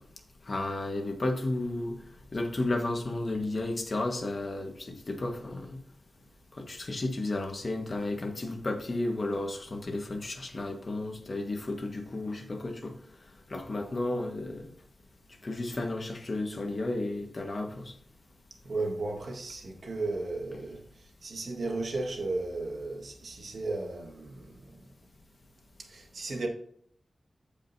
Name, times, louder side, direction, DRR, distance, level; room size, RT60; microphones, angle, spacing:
voice 1, 0.5-2.0 2.3-5.8 6.6-12.9 13.5-14.7 15.4-17.9, left 2 dB, 45° left, 1.5 m, -33 dB
voice 2, 18.6-24.9 25.8-26.5, right 2 dB, 65° right, 1.7 m, -35 dB
15.0 x 5.1 x 2.7 m
wide cardioid pair, 110°, 0 cm